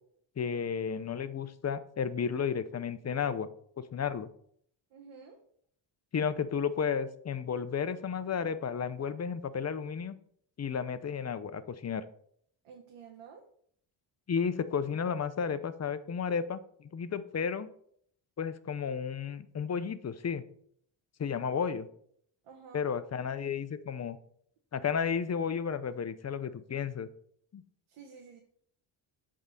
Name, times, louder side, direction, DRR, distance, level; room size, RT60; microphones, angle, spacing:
voice 1, 0.4-3.5 3.8-4.3 6.1-10.1 10.6-12.0 14.3-17.7 18.4-20.4 21.2-21.9 22.7-24.2 24.7-27.1 27.5-27.6, left 6 dB, 30° left, 13 dB, 0.7 m, -33 dB
voice 2, 4.9-5.4 12.6-13.4 22.5-22.9 27.9-28.4, right 6 dB, 80° right, 1 dB, 1.3 m, -51 dB
7.9 x 3.8 x 6.5 m, 0.64 s
cardioid pair, 85°, 50 cm